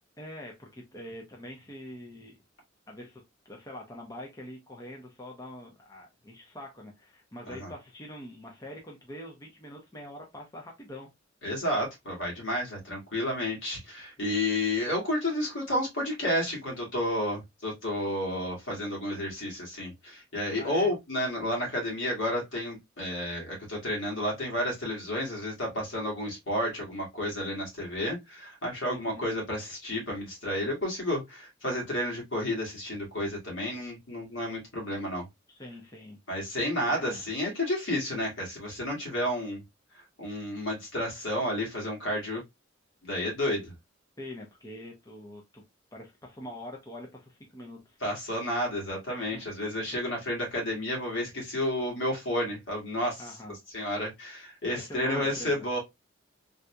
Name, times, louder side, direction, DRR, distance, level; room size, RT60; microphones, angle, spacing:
voice 1, 0.2-2.4 2.9-11.1 14.2-14.4 20.5-20.9 28.9-29.3 35.5-36.2 36.6-37.2 44.2-45.6 45.9-48.0 49.3-49.4 53.2-53.6 54.7-55.6, left 1 dB, 20° left, 0.7 m, -44 dB
voice 2, 11.4-35.3 36.3-39.6 40.2-42.4 43.0-43.7 48.0-53.2 53.7-55.8, left 1 dB, 70° left, 2.0 m, -31 dB
3.8 x 2.8 x 2.2 m
head